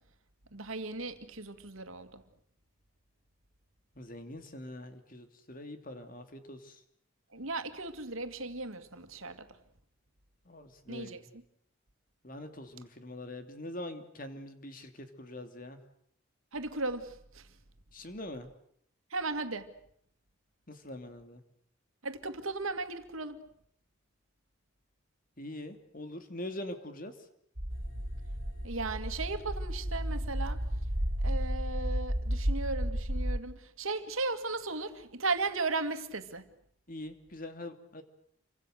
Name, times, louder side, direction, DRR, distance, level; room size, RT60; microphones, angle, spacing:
voice 1, 0.5-2.2 7.3-9.5 10.9-11.4 16.5-17.5 19.1-19.7 22.0-23.4 28.6-30.6 31.2-36.5, right 3 dB, 85° right, 2.3 m, -36 dB
voice 2, 4.0-6.7 10.5-11.2 12.2-15.8 17.9-18.5 20.7-21.4 25.4-27.1 36.9-38.0, left 1 dB, 40° left, 2.8 m, -43 dB
sound 1, 27.6-33.4, equal, 60° right, 3.3 m, -33 dB
sound 2, 27.7-33.2, equal, 85° left, 7.6 m, -58 dB
28.5 x 25.0 x 6.7 m
head